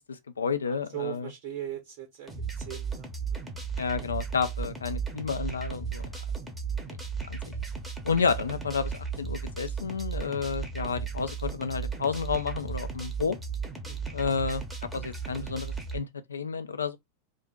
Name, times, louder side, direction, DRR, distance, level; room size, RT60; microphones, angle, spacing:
voice 1, 0.1-1.3 3.8-6.1 7.3-7.4 8.0-13.4 14.1-17.0, left 5 dB, 70° left, 0.4 m, -31 dB
voice 2, 0.6-2.3 2.5-3.5 13.8-14.2, right 12 dB, 45° right, 0.6 m, -39 dB
sound 1, 2.3-16.0, right 5 dB, 5° right, 0.7 m, -35 dB
2.5 x 2.1 x 3.7 m
figure-of-eight pair, 90°, 0 cm